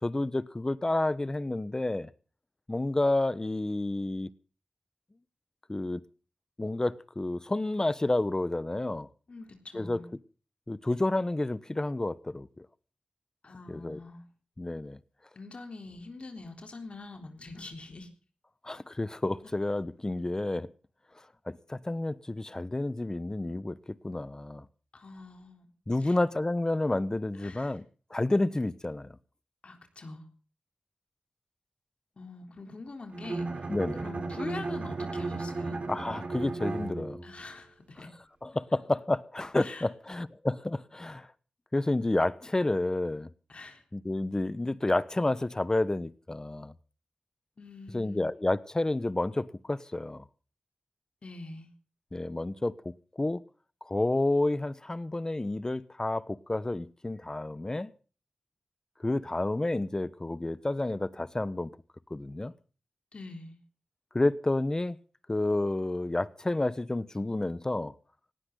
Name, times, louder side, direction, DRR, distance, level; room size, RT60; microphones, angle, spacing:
voice 1, 0.0-2.1 2.7-4.3 5.7-6.0 6.6-9.1 9.7-10.0 10.7-12.7 13.7-14.0 14.6-15.0 18.6-20.7 21.5-24.6 25.9-27.8 28.1-29.2 33.7-34.1 35.9-37.2 38.4-41.3 41.7-43.3 43.9-46.7 47.9-50.2 52.1-53.4 53.8-57.9 59.0-61.7 62.1-62.5 64.1-65.0 65.3-67.9, left 2 dB, 30° left, 1.1 m, -30 dB
voice 2, 9.3-10.1 13.4-14.2 15.3-18.1 24.9-25.7 26.0-26.2 27.3-27.8 29.6-30.2 32.2-35.8 37.2-38.1 39.6-39.9 43.5-43.8 47.6-48.3 51.2-51.7 63.1-63.6, left 3 dB, 60° left, 3.6 m, -44 dB
Bowed string instrument, 33.1-37.4, right 3 dB, 65° right, 3.3 m, -35 dB
18.5 x 17.0 x 3.9 m
cardioid pair, 50°, 2 cm